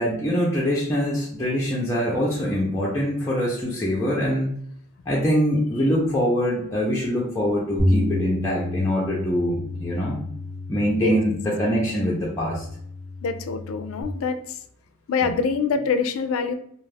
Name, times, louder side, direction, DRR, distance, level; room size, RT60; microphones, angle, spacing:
voice 1, 0.0-4.5 5.1-10.2 10.7-12.6 15.2-15.3, equal, 15° left, -6 dB, 0.4 m, -24 dB
Bass guitar, 7.8-14.0, left 1 dB, 80° right, 0.9 m, -29 dB
voice 2, 13.2-14.6 15.1-16.5, left 5 dB, 75° left, 9 dB, 0.3 m, -25 dB
2.4 x 2.3 x 3.2 m, 0.65 s
head